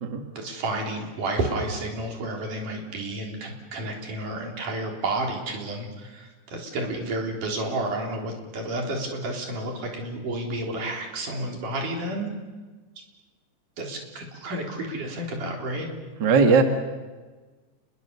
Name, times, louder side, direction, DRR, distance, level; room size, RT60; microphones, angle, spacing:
voice 1, 0.4-12.3 13.8-15.9, right 2 dB, 80° right, 1 dB, 5.5 m, -31 dB
voice 2, 16.2-16.6, right 5 dB, 40° right, 5 dB, 2.2 m, -18 dB
28.5 x 22.0 x 7.0 m, 1.3 s
omnidirectional pair, 3.6 m